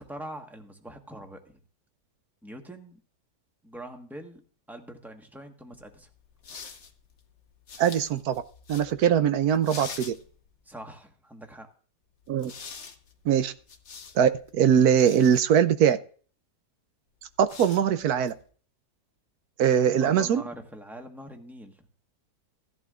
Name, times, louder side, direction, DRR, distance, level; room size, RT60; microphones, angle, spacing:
voice 1, 0.0-1.6 2.4-3.0 3.6-4.4 4.7-6.1 10.6-11.7 20.0-21.8, right 1 dB, ahead, 3 dB, 1.1 m, -43 dB
sound 1, 5.7-10.7 12.2-15.4 17.2-18.5, left 5 dB, 50° left, 1.2 m, -46 dB
voice 2, 7.8-8.4 8.7-10.1 12.3-12.5 13.2-13.5 14.1-16.0 17.4-18.3 19.6-20.4, right 8 dB, 70° right, 12 dB, 1.1 m, -22 dB
16.5 x 11.0 x 2.5 m, 0.42 s
omnidirectional pair, 1.8 m